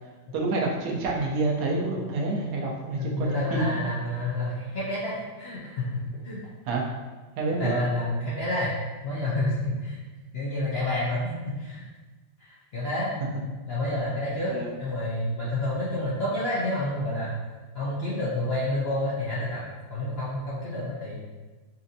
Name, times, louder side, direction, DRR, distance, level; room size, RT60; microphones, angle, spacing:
voice 1, 0.3-3.8 6.7-6.8 7.4-7.8 14.5-14.7, right 3 dB, 80° right, -2 dB, 1.2 m, -28 dB
voice 2, 3.0-6.4 7.6-8.8 9.0-10.0 10.3-11.8 12.4-13.1 13.7-14.5 14.8-17.4 17.7-19.6 19.9-21.2, left 1 dB, 60° left, -8 dB, 0.6 m, -29 dB
4.2 x 2.5 x 2.6 m, 1.3 s
omnidirectional pair, 1.7 m